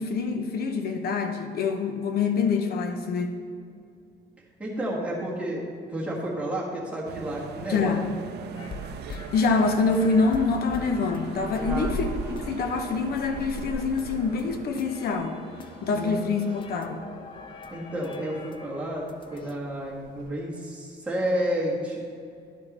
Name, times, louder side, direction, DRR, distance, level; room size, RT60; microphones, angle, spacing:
voice 1, 0.0-3.4 7.7-8.0 9.1-15.4 15.8-17.0, left 4 dB, 60° left, 6 dB, 0.8 m, -26 dB
voice 2, 4.6-8.1 11.7-12.0 15.8-16.3 17.7-22.0, equal, 5° right, -6 dB, 1.6 m, -31 dB
sound 1, 7.1-14.7, right 8 dB, 65° right, 0.5 m, -41 dB
sound 2, 8.5-19.6, left 4 dB, 30° left, 0.4 m, -44 dB
sound 3, 9.3-20.3, right 2 dB, 30° right, 2.2 m, -42 dB
11.0 x 5.1 x 4.3 m, 2.4 s
cardioid pair, 170°, 18 cm